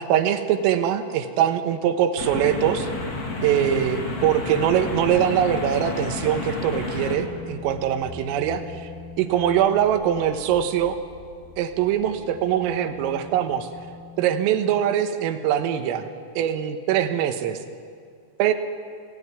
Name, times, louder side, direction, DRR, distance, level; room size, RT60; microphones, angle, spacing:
voice 1, 0.0-2.9 3.4-8.9 9.2-11.0 11.6-13.7 14.2-16.1 16.4-17.6 18.4-18.5, right 10 dB, 90° right, 7 dB, 3.9 m, -22 dB
sound 1, 2.2-7.2, left 3 dB, 35° left, 3.8 m, -30 dB
sound 2, 6.7-15.2, left 4 dB, 55° left, 6.2 m, -43 dB
28.5 x 18.5 x 9.7 m, 2.2 s
omnidirectional pair, 5.9 m